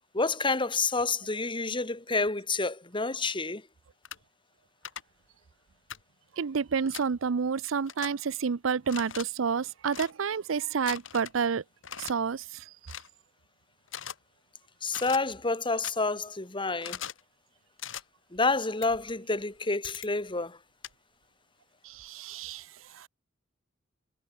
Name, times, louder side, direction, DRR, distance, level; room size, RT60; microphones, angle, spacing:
voice 1, 0.1-3.6 14.8-17.0 18.3-20.6, left 3 dB, 25° left, 2.4 m, -29 dB
sound 1, 4.0-4.2 4.8-5.0 5.9-6.0 6.9-7.1 7.9-8.1 8.8-9.2 9.9-10.1 10.9-11.4 11.8-12.1 12.9-13.1 13.9-14.2 14.9-15.2 15.8-15.9 16.8-17.2 17.8-18.0 18.8-18.9 19.8-20.1 20.8-20.9, left 9 dB, 70° left, 1.7 m, -39 dB
voice 2, 6.3-11.6 12.0-12.7 21.8-23.1, right 6 dB, 80° right, 0.5 m, -30 dB
head